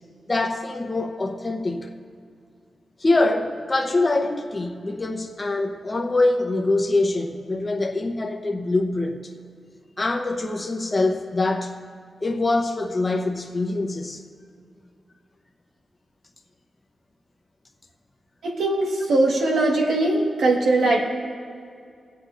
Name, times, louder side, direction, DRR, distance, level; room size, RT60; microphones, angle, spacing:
voice 1, 0.3-1.9 3.0-9.2 10.0-11.7 12.2-14.2, left 2 dB, 25° left, 0.8 m, -24 dB
voice 2, 18.4-21.0, right 2 dB, 85° right, 1.6 m, -20 dB
22.5 x 8.3 x 2.6 m
wide cardioid pair, 120°, 0 cm